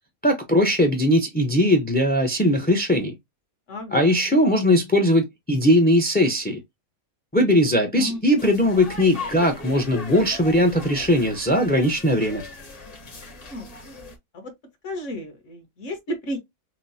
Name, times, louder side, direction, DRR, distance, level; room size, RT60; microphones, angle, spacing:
voice 1, 0.2-3.1 3.9-6.6 7.3-12.4, equal, 10° left, 0.5 m, -19 dB
voice 2, 3.7-4.1 7.9-8.2 13.5-13.7 14.3-14.5 14.8-16.4, left 1 dB, 60° left, 1.6 m, -32 dB
sound 1, 8.4-14.2, left 2 dB, 30° left, 0.9 m, -38 dB
5.9 x 2.1 x 2.7 m
omnidirectional pair, 1.5 m